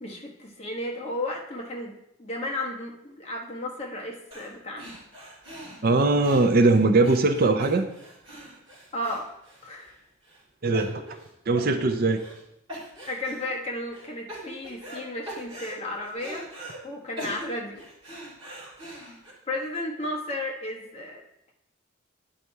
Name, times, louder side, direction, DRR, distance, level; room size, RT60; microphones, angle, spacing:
voice 1, 0.0-4.9 8.9-9.3 9.6-9.9 13.1-16.5 16.8-17.8 19.5-21.2, left 1 dB, 30° left, 0 dB, 1.1 m, -33 dB
sound 1, 4.3-4.5 4.8-9.9 10.3-10.4 10.7-11.3 11.6-12.4 12.7-13.5 13.9-15.0 15.3-16.8 17.2-19.3, equal, 20° right, 2.7 m, -42 dB
voice 2, 5.8-7.9 10.6-11.2 11.5-12.2, right 3 dB, 45° right, 6 dB, 0.5 m, -21 dB
9.7 x 4.1 x 4.6 m, 0.81 s
head